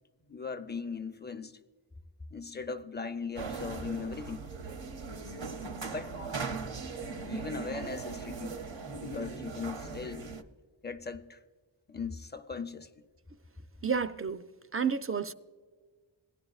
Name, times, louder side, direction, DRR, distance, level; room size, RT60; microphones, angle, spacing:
voice 1, 0.3-1.5 2.3-4.5 5.8-6.1 7.2-8.6 8.9-10.3 10.8-11.4 11.9-12.9, left 5 dB, 20° left, 0.6 m, -39 dB
sound 1, 3.4-10.4, right 4 dB, 75° right, 0.8 m, -39 dB
voice 2, 13.8-15.3, right 6 dB, 30° right, 0.4 m, -31 dB
16.5 x 10.5 x 2.4 m
wide cardioid pair, 60°, 46 cm